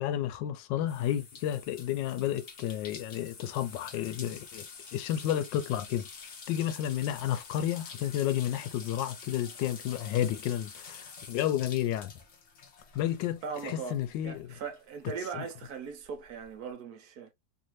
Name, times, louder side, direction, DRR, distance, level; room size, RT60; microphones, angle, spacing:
voice 1, 0.0-4.7 4.9-6.1 6.5-12.1 12.9-14.5 15.3-15.5, left 11 dB, 90° left, 1.3 m, -31 dB
sound 1, 0.9-14.9 15.2-16.5, left 5 dB, 50° left, 0.8 m, -48 dB
voice 2, 13.4-14.0 14.2-17.3, right 6 dB, 65° right, 1.2 m, -39 dB
3.1 x 2.6 x 3.0 m
omnidirectional pair, 1.9 m